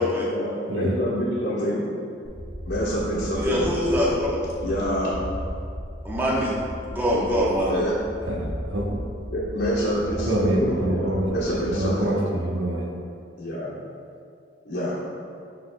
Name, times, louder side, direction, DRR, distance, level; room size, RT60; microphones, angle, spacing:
voice 1, 0.3-1.9 2.7-3.6 4.6-5.2 6.1-6.2 7.7-7.9 9.3-12.3 13.4-13.8 14.6-15.0, equal, 70° left, -9 dB, 1.2 m, -27 dB
sound 1, 2.2-12.0, equal, 5° left, 1.2 m, -35 dB
voice 2, 3.4-4.3 6.0-6.5 6.9-7.8, equal, 10° right, -6 dB, 1.0 m, -23 dB
voice 3, 8.3-9.2 10.2-11.3 11.7-12.9, right 1 dB, 70° right, 0 dB, 0.9 m, -26 dB
12.0 x 3.9 x 2.2 m, 2.4 s
head